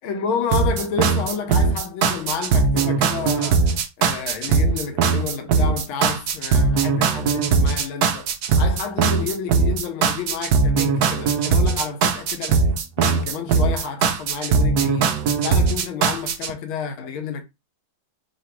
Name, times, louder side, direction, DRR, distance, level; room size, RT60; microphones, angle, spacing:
voice 1, 0.0-3.7 4.0-8.3 8.6-12.7 13.0-15.2 15.4-17.4, left 6 dB, 75° left, 1.6 m, -30 dB
sound 1, 0.5-16.5, right 5 dB, 75° right, 0.8 m, -20 dB
3.9 x 2.5 x 4.4 m
omnidirectional pair, 2.4 m